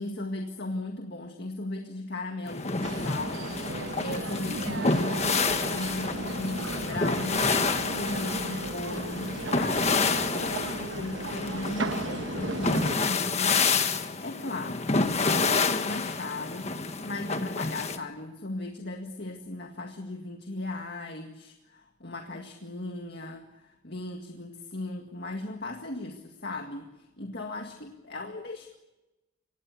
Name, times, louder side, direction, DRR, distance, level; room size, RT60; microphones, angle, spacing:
voice 1, 0.0-15.0 15.2-28.8, left 2 dB, 50° left, 3 dB, 2.0 m, -37 dB
sound 1, 2.5-18.0, left 4 dB, 30° left, 1.4 m, -29 dB
sound 2, 2.8-13.0, right 3 dB, 60° right, 1.2 m, -36 dB
25.0 x 19.0 x 8.4 m, 1.0 s
head